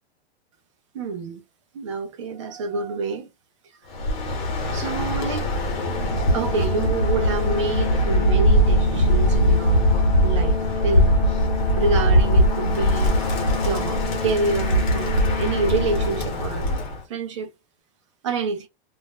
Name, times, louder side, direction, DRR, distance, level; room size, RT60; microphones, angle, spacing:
voice 1, 0.9-1.4 1.7-3.3 4.7-5.5 6.3-9.9 10.2-10.6 10.8-11.2 11.8-13.1 13.6-16.8 17.1-17.5 18.2-18.7, right 4 dB, 30° right, 0.5 m, -27 dB
Bird, 3.9-17.0, equal, 45° left, 1.0 m, -21 dB
Organ, 5.8-16.7, left 4 dB, 25° left, 0.6 m, -32 dB
2.5 x 2.1 x 3.5 m
supercardioid pair, 180°, 32 cm